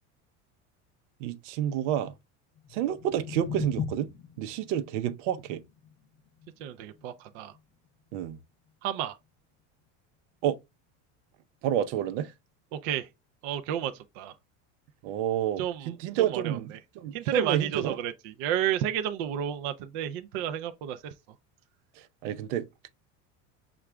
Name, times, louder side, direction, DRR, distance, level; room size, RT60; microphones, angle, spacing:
voice 1, 1.2-2.1 2.7-4.1 4.4-5.6 8.1-8.4 10.4-10.6 11.6-12.3 15.0-17.9 22.2-22.9, right 10 dB, 85° right, 0.7 m, -29 dB
sound 1, 2.5-8.7, left 7 dB, 35° left, 0.5 m, -41 dB
voice 2, 6.6-7.5 8.8-9.2 12.7-13.1 13.4-14.3 15.6-16.8 17.1-21.1, right 10 dB, 50° right, 0.4 m, -32 dB
5.9 x 2.4 x 3.2 m
cardioid pair, 180°, 35 cm